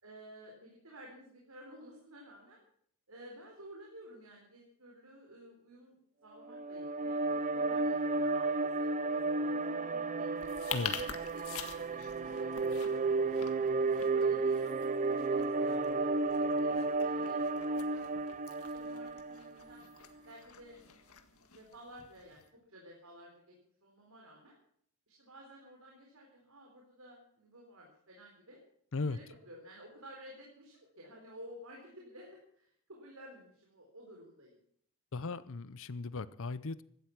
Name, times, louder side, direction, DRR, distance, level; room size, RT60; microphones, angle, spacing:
voice 1, 0.0-2.6 3.1-5.9 6.2-10.3 10.9-13.7 14.1-14.9 15.3-18.0 18.6-19.8 20.3-20.8 21.5-22.4 22.7-23.6 23.8-24.6 25.1-28.6 29.1-34.6, equal, 80° right, -1 dB, 4.2 m, -53 dB
sound 1, 6.4-19.8, right 3 dB, 35° right, 0.6 m, -33 dB
sound 2, 10.3-22.5, left 8 dB, 85° left, 1.8 m, -47 dB
voice 2, 35.1-36.8, left 3 dB, 65° left, 17 dB, 0.7 m, -37 dB
17.0 x 12.5 x 6.1 m, 0.66 s
head